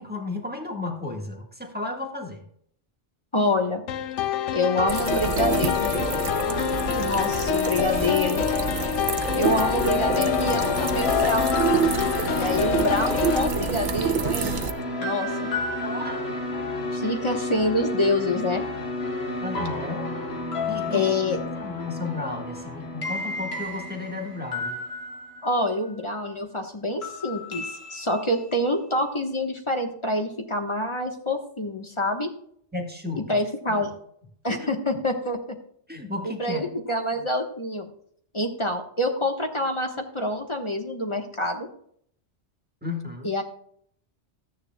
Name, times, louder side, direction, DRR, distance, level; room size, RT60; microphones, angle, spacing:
voice 1, 0.0-2.5 6.5-7.2 12.6-12.7 15.8-16.2 19.4-20.1 20.7-21.0 21.6-24.8 32.7-33.4 33.8-33.9 34.6-34.7 35.9-36.7 42.8-43.3, left 3 dB, 10° right, 1 dB, 1.6 m, -34 dB
voice 2, 3.3-3.8 4.5-6.1 6.9-8.4 9.3-12.0 12.3-14.6 15.0-15.5 16.9-18.6 20.9-21.4 25.4-27.6 27.9-32.3 33.2-33.9 34.4-35.6 36.2-37.9 38.3-41.7 43.2-43.4, left 1 dB, 25° left, 3 dB, 1.2 m, -26 dB
sound 1, 3.9-13.5, left 9 dB, 90° left, 1.0 m, -26 dB
sound 2, 4.9-14.7, right 7 dB, 50° right, 0.8 m, -28 dB
Awesome Emotional Piano, 9.4-26.0 27.0-28.7, left 2 dB, 60° left, 1.6 m, -31 dB
14.0 x 9.7 x 2.3 m, 0.65 s
omnidirectional pair, 1.2 m